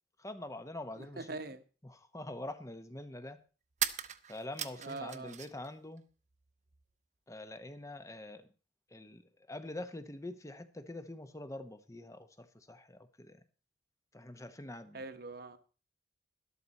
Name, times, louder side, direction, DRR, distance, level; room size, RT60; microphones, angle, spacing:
voice 1, 0.2-1.4 1.8-3.4 4.3-6.0 7.3-8.5 8.9-9.2 9.5-13.4 14.1-15.0, left 1 dB, 15° left, 1.0 m, -45 dB
voice 2, 1.0-1.6 4.8-5.4 14.9-15.6, right 3 dB, 55° right, 1.1 m, -43 dB
sound 1, 3.7-5.7 6.0-6.8, right 10 dB, 40° right, 0.8 m, -39 dB
12.5 x 12.5 x 4.2 m
head